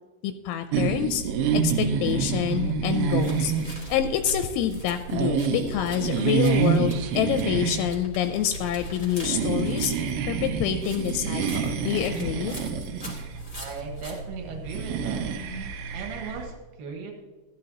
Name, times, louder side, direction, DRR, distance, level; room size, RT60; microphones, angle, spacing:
voice 1, 0.2-1.2 1.5-12.6, left 10 dB, 85° left, 8 dB, 3.0 m, -27 dB
sound 1, 0.7-16.5, right 6 dB, 80° right, 3.2 m, -28 dB
sound 2, 3.2-7.4 7.7-10.1 10.7-14.1, left 1 dB, 15° left, 1.6 m, -44 dB
voice 2, 13.5-15.2 15.9-17.1, right 5 dB, 55° right, 1 dB, 2.7 m, -37 dB
15.5 x 12.0 x 2.9 m, 1.3 s
omnidirectional pair, 5.5 m